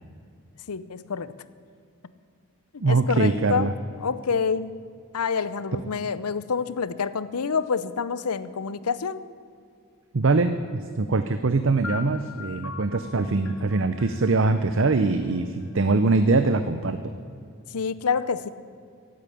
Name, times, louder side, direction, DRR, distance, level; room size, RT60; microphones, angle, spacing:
voice 1, 0.7-1.3 2.7-3.7 4.0-4.7 5.1-9.2 17.7-18.5, left 5 dB, 90° left, 16 dB, 0.7 m, -27 dB
voice 2, 2.8-3.7 10.1-17.0, right 3 dB, 55° right, 10 dB, 0.6 m, -23 dB
sound 1, 11.8-15.7, left 5 dB, 60° left, 1.6 m, -42 dB
15.5 x 8.8 x 10.0 m, 2.4 s
head